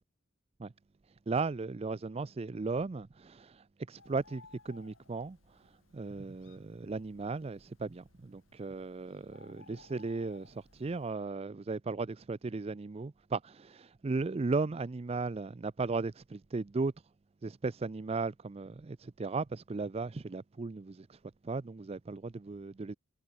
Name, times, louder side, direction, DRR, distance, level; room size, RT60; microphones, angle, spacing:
voice 1, 1.3-5.6 5.9-16.9 17.4-22.9, right 3 dB, 30° right, 0.4 m, -36 dB
Bird, 4.0-11.1, left 3 dB, 85° left, 3.8 m, -61 dB
head